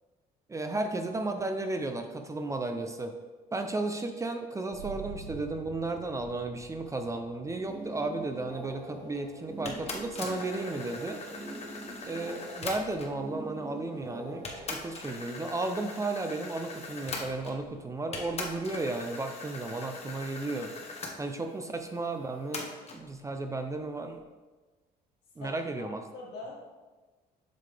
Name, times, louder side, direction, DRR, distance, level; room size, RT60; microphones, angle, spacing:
voice 1, 0.5-3.1 3.5-11.2 12.0-20.7 21.2-24.2 25.4-26.0, right 2 dB, 20° right, 6 dB, 0.5 m, -34 dB
sound 1, 4.7-16.0, right 7 dB, 85° right, 0.7 m, -51 dB
sound 2, 7.5-14.9, right 1 dB, 70° right, 1.9 m, -44 dB
sound 3, 9.6-13.2 14.0-14.1 14.4-17.7 18.1-21.1 22.5-23.0, left 3 dB, 40° left, 1.1 m, -41 dB
voice 2, 25.4-26.5, left 3 dB, 75° left, -3 dB, 2.2 m, -44 dB
7.6 x 5.5 x 3.4 m, 1.2 s
cardioid pair, 110°, 17 cm